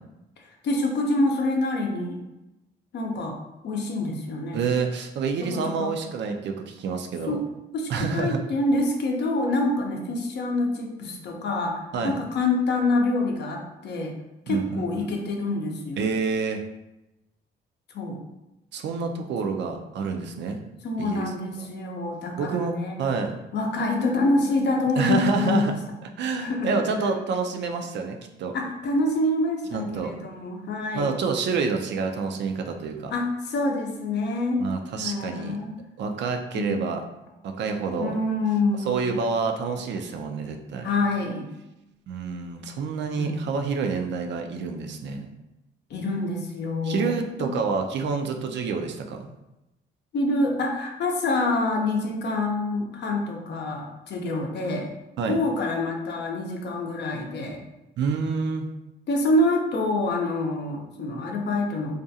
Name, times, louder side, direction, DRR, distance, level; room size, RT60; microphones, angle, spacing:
voice 1, 0.6-2.2 2.9-3.4 3.6-4.6 5.4-5.9 7.3-7.4 7.7-14.1 14.5-16.0 17.9-18.2 20.8-23.0 23.5-25.7 26.4-26.8 28.5-31.2 33.1-34.6 35.0-35.7 36.5-36.9 38.0-39.1 40.8-41.5 43.2-43.3 45.9-47.1 47.4-47.5 50.1-54.9 55.3-57.6 59.1-62.0, left 2 dB, 60° left, 1 dB, 0.6 m, -26 dB
voice 2, 4.5-7.4 7.9-8.4 11.9-12.2 14.5-15.1 16.0-16.6 18.7-20.6 21.0-21.3 22.4-23.4 25.0-28.5 29.7-30.1 30.9-33.1 34.6-35.6 36.0-37.0 37.4-38.2 38.8-40.9 42.1-45.3 46.8-49.3 55.2-55.4 58.0-58.7, right 5 dB, 65° right, 4 dB, 0.4 m, -28 dB
2.4 x 2.2 x 2.6 m, 0.94 s
cardioid pair, 90°, 20 cm